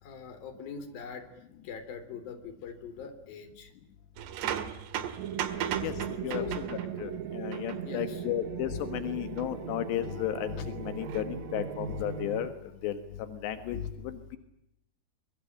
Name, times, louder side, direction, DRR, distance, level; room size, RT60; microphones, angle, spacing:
voice 1, 0.0-3.7 5.7-5.8 6.3-6.5 7.8-8.2, left 6 dB, 60° left, 10 dB, 5.2 m, -42 dB
sound 1, 4.2-7.1 7.5-7.8 9.4-9.5 11.0-11.2, right 9 dB, 80° right, 3.8 m, -36 dB
sound 2, 5.2-12.5, right 8 dB, 55° right, 2.1 m, -38 dB
voice 2, 5.8-12.5 12.8-14.2, left 11 dB, 90° left, 10 dB, 3.7 m, -34 dB
25.0 x 23.0 x 8.7 m, 0.79 s
omnidirectional pair, 4.8 m